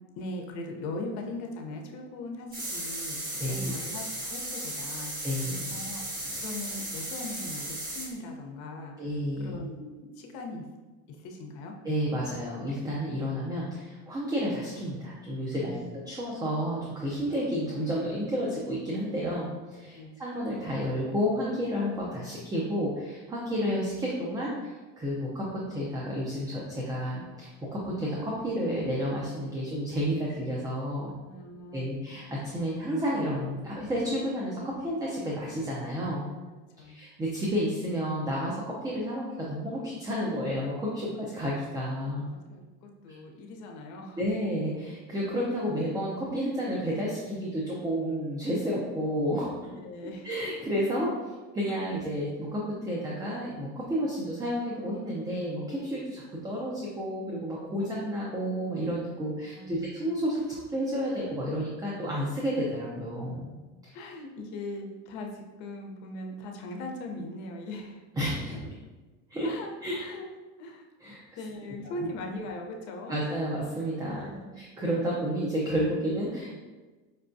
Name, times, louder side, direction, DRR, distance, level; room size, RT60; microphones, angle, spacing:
voice 1, 0.2-5.4 5.7-6.0 6.4-10.6 11.1-11.7 15.6-15.9 19.9-20.2 31.2-31.9 36.8-37.0 42.3-44.2 49.6-50.3 51.7-51.8 59.5-60.0 63.9-68.0 69.4-70.3 70.6-70.9 71.4-73.2 74.0-74.5, left 2 dB, 60° left, 2 dB, 0.7 m, -40 dB
sound 1, 2.5-8.1, right 1 dB, 25° right, 1.2 m, -36 dB
voice 2, 3.4-3.7 5.2-5.7 9.0-9.6 11.8-31.2 31.7-36.2 36.9-42.3 44.2-49.5 50.2-51.1 51.5-63.5 63.8-64.0 68.2-68.6 69.3-69.5 69.8-70.0 71.0-71.2 73.1-76.6, equal, 10° right, -4 dB, 0.5 m, -31 dB
5.2 x 2.2 x 2.5 m, 1.2 s
supercardioid pair, 125°, 32 cm